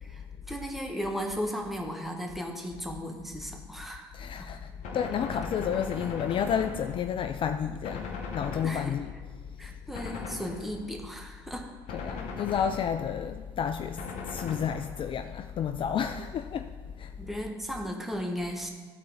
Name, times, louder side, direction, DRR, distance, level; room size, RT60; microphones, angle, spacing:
voice 1, 0.0-4.5 8.6-8.9 9.6-11.7 17.2-18.7, equal, ahead, 1 dB, 1.3 m, -36 dB
voice 2, 4.1-8.1 8.3-9.1 9.7-9.8 11.9-17.1, left 8 dB, 45° left, 8 dB, 0.4 m, -31 dB
Gunshot gunfire, 4.8-7.3 7.8-9.3 9.9-11.0 11.9-13.3 14.0-15.2, left 4 dB, 65° left, 1.0 m, -39 dB
13.0 x 4.4 x 3.7 m, 1.4 s
hypercardioid pair, 60°, 13 cm